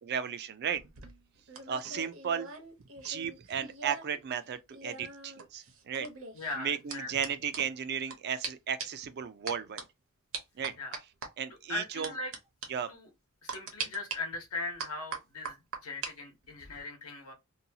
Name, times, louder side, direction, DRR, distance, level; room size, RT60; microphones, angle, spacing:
voice 1, 0.1-0.8 1.7-2.5 3.0-6.1 6.5-9.9 10.6-10.8 11.4-12.1 12.7-12.9, right 7 dB, 50° right, 0.4 m, -34 dB
sound 1, 0.8-4.2 4.4-8.2 8.4-8.5 8.8-9.1 9.5-9.8 10.3-11.3 12.0-12.4 12.6-12.7 13.5-14.2 14.8-16.1 16.4-16.8, right 5 dB, 65° right, 0.8 m, -41 dB
voice 2, 6.3-7.1 10.8-10.9 11.7-12.3 12.9-13.1 13.4-17.3, left 3 dB, 75° left, 1.0 m, -39 dB
2.7 x 2.3 x 2.7 m
head